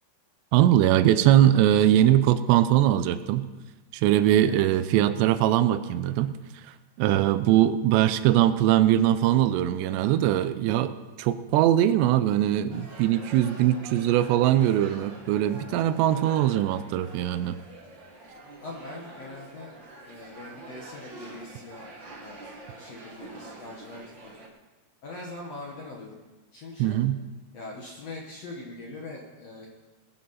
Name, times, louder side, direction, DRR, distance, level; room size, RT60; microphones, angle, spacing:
voice 1, 0.5-3.5 3.9-6.4 6.6-17.6 26.8-27.2, right 12 dB, 85° right, 13 dB, 2.8 m, -21 dB
sound 1, 12.7-24.5, right 2 dB, 65° right, 1.1 m, -46 dB
voice 2, 18.6-19.7 20.0-22.4 22.7-24.3 25.0-26.2 26.5-27.0 27.5-29.7, left 2 dB, 60° left, -2 dB, 1.7 m, -42 dB
20.5 x 9.5 x 4.2 m, 1.2 s
omnidirectional pair, 4.9 m